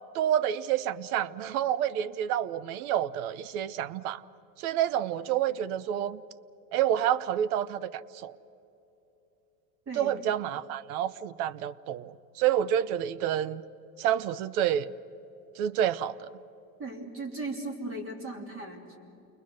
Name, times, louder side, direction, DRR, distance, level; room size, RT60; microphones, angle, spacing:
voice 1, 0.1-4.2 4.6-6.2 6.7-8.3 10.0-13.6 14.0-14.9 15.6-16.3, right 10 dB, 70° right, 19 dB, 0.8 m, -28 dB
voice 2, 16.8-19.0, right 2 dB, 30° right, 4 dB, 2.9 m, -37 dB
29.0 x 22.0 x 6.5 m, 2.9 s
cardioid pair, 160°, 45 cm